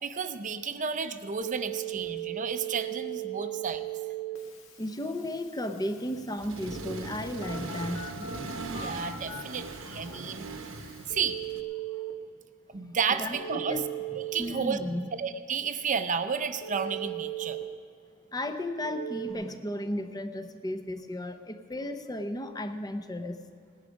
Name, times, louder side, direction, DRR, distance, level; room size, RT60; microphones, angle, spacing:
voice 1, 0.0-3.9 8.7-10.5 10.7-10.8 11.1-11.4 12.7-13.8 14.2-14.8 15.2-17.6, right 6 dB, 40° right, 10 dB, 0.6 m, -32 dB
Telephone, 1.3-12.1 13.3-14.3 16.6-17.6 18.8-19.3, right 10 dB, 80° left, 1.6 m, -39 dB
voice 2, 4.8-8.3 9.8-10.2 11.9-12.0 13.1-13.8 14.4-15.0 18.3-23.4, left 1 dB, 20° left, 8 dB, 0.7 m, -34 dB
Accelerating revving vroom, 6.4-11.6, right 3 dB, 70° right, 0.9 m, -39 dB
18.0 x 10.5 x 5.2 m, 2.3 s
head